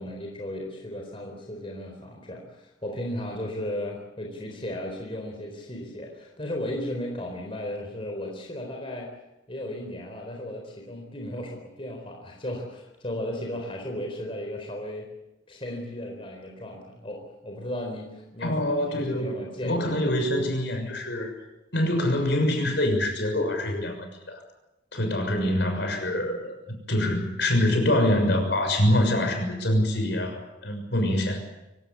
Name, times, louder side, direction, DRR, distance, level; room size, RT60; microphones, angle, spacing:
voice 1, 0.0-9.1 9.5-15.1 15.5-20.0, left 1 dB, 30° left, 1 dB, 4.2 m, -35 dB
voice 2, 18.4-19.3 19.6-21.3 21.7-24.4 24.9-31.4, left 1 dB, 60° left, 5 dB, 6.6 m, -25 dB
24.5 x 18.0 x 8.4 m, 0.96 s
head